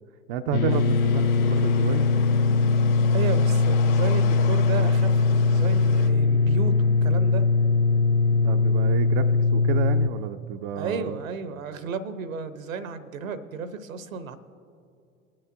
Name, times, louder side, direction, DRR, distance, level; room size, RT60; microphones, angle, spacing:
voice 1, 0.3-2.1 8.3-11.2, right 9 dB, 45° right, 8 dB, 0.5 m, -31 dB
sound 1, 0.5-10.1, left 4 dB, 90° left, 0.6 m, -21 dB
sound 2, 0.7-6.1, left 8 dB, 60° left, 1.7 m, -39 dB
voice 2, 3.1-7.4 10.7-14.4, right 5 dB, 70° right, 12 dB, 0.9 m, -33 dB
22.5 x 8.9 x 2.6 m, 2.5 s
figure-of-eight pair, 85°, 41 cm